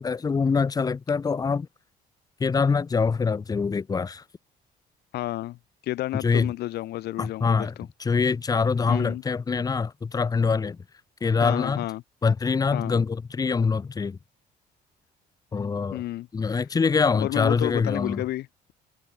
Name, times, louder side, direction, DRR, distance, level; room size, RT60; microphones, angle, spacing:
voice 1, 0.0-1.7 2.4-4.2 6.2-6.5 7.2-7.7 8.0-10.8 11.2-11.8 12.2-14.2 15.5-16.0 16.3-18.2, left 5 dB, 20° left, 0.7 m, -24 dB
voice 2, 5.1-5.6 5.8-7.9 8.9-9.2 11.4-12.0 12.7-13.0 15.9-16.6 17.1-18.7, left 15 dB, 75° left, 1.6 m, -31 dB
cardioid pair, 110°, 17 cm